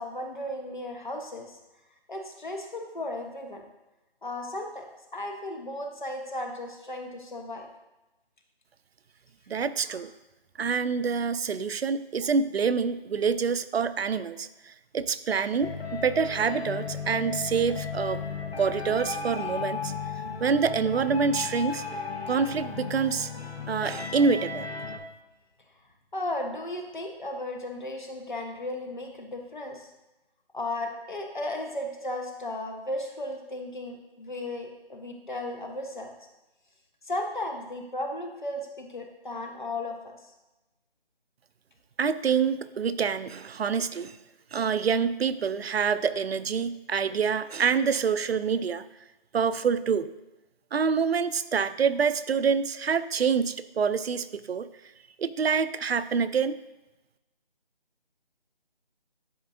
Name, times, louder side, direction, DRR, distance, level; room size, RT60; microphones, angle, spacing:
voice 1, 0.0-1.6 2.1-3.6 4.2-4.8 5.1-7.7 9.9-10.0 26.1-29.9 30.5-36.1 37.0-40.3, left 1 dB, 50° left, 3 dB, 1.0 m, -35 dB
voice 2, 9.5-10.1 10.6-18.2 18.6-19.9 20.4-21.8 22.3-23.3 23.7-24.7 42.0-44.2 44.5-48.8 49.3-50.1 50.7-54.7 55.2-56.6, right 6 dB, 80° right, 14 dB, 0.5 m, -26 dB
sound 1, 15.6-25.0, left 5 dB, 90° left, 1.1 m, -35 dB
10.5 x 4.3 x 2.6 m, 1.0 s
figure-of-eight pair, 180°, 31 cm